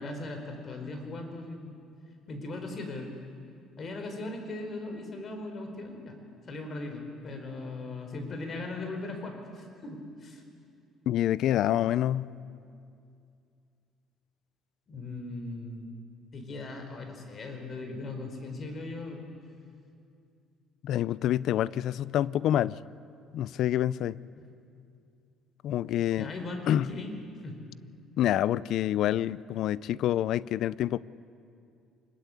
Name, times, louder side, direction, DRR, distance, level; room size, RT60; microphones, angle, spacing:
voice 1, 0.0-1.7 2.3-3.1 3.8-6.2 6.5-10.4 14.9-15.9 16.3-19.2 25.9-27.1 27.4-27.6, left 2 dB, 40° left, 5 dB, 4.6 m, -38 dB
voice 2, 11.1-12.3 20.8-22.8 23.3-24.2 25.6-26.3 26.7-26.9 28.2-31.0, left 12 dB, 65° left, 20 dB, 0.5 m, -27 dB
24.5 x 21.5 x 8.6 m, 2.4 s
cardioid pair, 105°, 0 cm